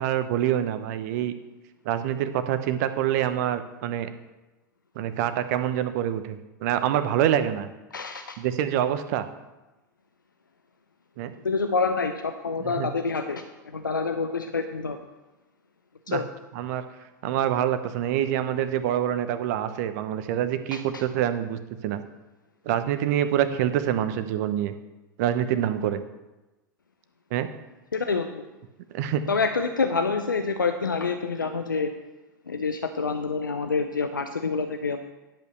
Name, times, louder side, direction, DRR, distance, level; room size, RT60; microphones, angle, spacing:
voice 1, 0.0-1.3 1.8-4.1 4.9-7.7 8.4-9.3 11.2-11.3 12.6-12.9 16.1-16.2 16.5-16.8 17.2-22.0 22.6-24.7 25.2-26.0 27.3-27.5 28.9-29.2, right 11 dB, 60° right, 10 dB, 0.9 m, -26 dB
voice 2, 7.9-8.4 11.4-15.0 16.1-16.2 20.7-20.8 27.9-28.5 29.3-31.9 32.5-35.0, left 4 dB, 90° left, 7 dB, 0.6 m, -27 dB
10.5 x 5.5 x 6.5 m, 1.1 s
figure-of-eight pair, 85°, 10 cm